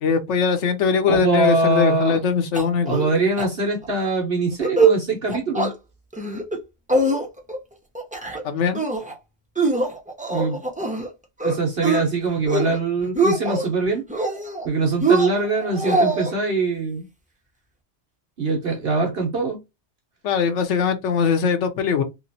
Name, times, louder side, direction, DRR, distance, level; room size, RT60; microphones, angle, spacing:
voice 1, 0.0-3.0 8.4-8.8 20.2-22.0, left 6 dB, 75° left, 1.0 m, -21 dB
voice 2, 1.1-2.2 2.9-5.7 10.3-10.6 11.4-14.0 14.6-17.1 18.4-19.6, right 3 dB, 55° right, 1.1 m, -23 dB
sound 1, 2.5-3.1 3.4-3.5 3.8-4.1 4.5-5.0 5.3-5.7 6.1-6.6 6.9-7.6 7.9-8.4 8.7-9.1 9.6-11.1 11.4-12.0 12.4-12.8 13.0-13.7 14.1-14.7 15.0-16.3, right 3 dB, 10° right, 0.6 m, -22 dB
3.0 x 2.9 x 2.7 m
omnidirectional pair, 1.3 m